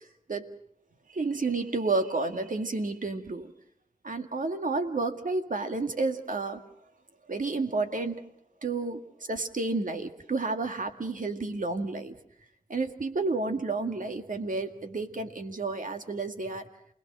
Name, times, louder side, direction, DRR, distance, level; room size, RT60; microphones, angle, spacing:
voice 1, 1.1-3.5 4.0-6.6 7.3-8.3 8.6-9.0 9.3-12.1 12.7-16.7, right 3 dB, 60° right, 6 dB, 2.1 m, -31 dB
28.0 x 19.0 x 6.3 m, 0.70 s
cardioid pair, 45°, 15 cm